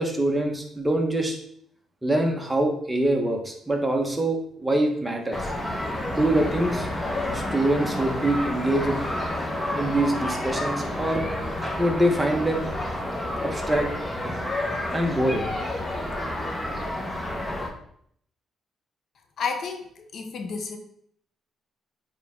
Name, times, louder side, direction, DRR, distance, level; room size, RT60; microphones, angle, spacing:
voice 1, 0.0-1.4 2.0-5.5 6.0-6.9 7.3-9.0 9.7-11.3 11.8-12.7 13.4-13.9 14.9-15.5, right 1 dB, 10° right, 2 dB, 1.4 m, -24 dB
sound 1, 5.3-17.7, left 1 dB, 15° left, 1.3 m, -30 dB
voice 2, 19.4-20.8, left 5 dB, 60° left, 5 dB, 0.9 m, -31 dB
8.2 x 3.7 x 3.7 m, 0.67 s
cardioid pair, 90°, 0 cm